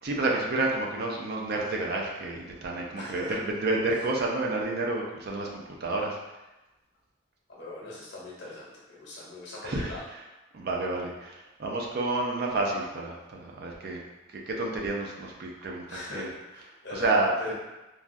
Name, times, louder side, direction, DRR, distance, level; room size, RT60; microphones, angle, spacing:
voice 1, 0.0-6.2 9.6-9.9 10.5-14.0 14.3-16.3 16.9-17.5, right 2 dB, 50° right, -1 dB, 0.4 m, -30 dB
voice 2, 3.0-3.4 7.5-10.1 15.9-17.5, left 2 dB, 60° left, -5 dB, 0.9 m, -40 dB
3.3 x 2.3 x 2.6 m, 1.0 s
head